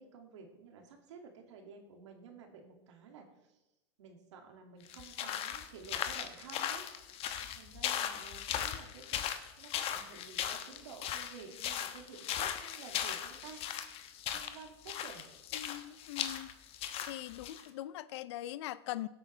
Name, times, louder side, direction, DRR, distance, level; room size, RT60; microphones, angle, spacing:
voice 1, 0.0-3.6 4.0-13.6 14.3-15.2, right 5 dB, 85° right, 3 dB, 2.3 m, -52 dB
sound 1, 4.9-17.7, left 10 dB, 40° left, 1.0 m, -38 dB
voice 2, 15.5-16.5 17.1-19.1, left 14 dB, 70° left, 17 dB, 0.6 m, -41 dB
17.0 x 8.4 x 3.3 m, 0.99 s
supercardioid pair, 130°, 15 cm